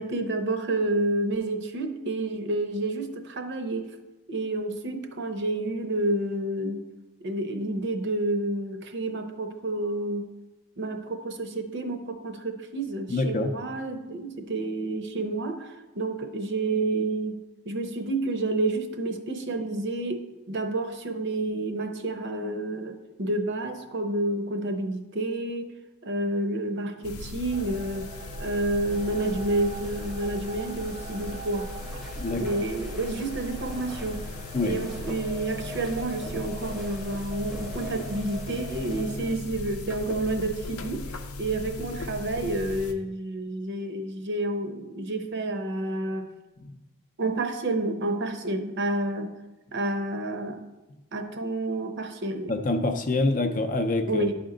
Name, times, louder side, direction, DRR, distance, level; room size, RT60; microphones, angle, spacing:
voice 1, 0.0-3.9 4.3-6.8 7.2-10.3 10.8-17.4 17.7-25.7 26.0-28.1 28.4-31.7 32.3-34.3 34.6-46.3 47.2-49.3 49.7-50.6 51.1-52.5 54.1-54.3, right 2 dB, 55° right, 6 dB, 0.7 m, -29 dB
voice 2, 13.1-13.5 32.2-32.6 34.5-34.8 52.5-54.2, left 2 dB, 35° left, 6 dB, 0.5 m, -26 dB
sound 1, 27.0-42.9, left 2 dB, 85° left, 0.7 m, -38 dB
sound 2, 27.5-39.4, right 2 dB, 25° right, 0.4 m, -43 dB
sound 3, 28.9-39.0, equal, ahead, 0.8 m, -46 dB
11.0 x 4.3 x 3.8 m, 1.1 s
head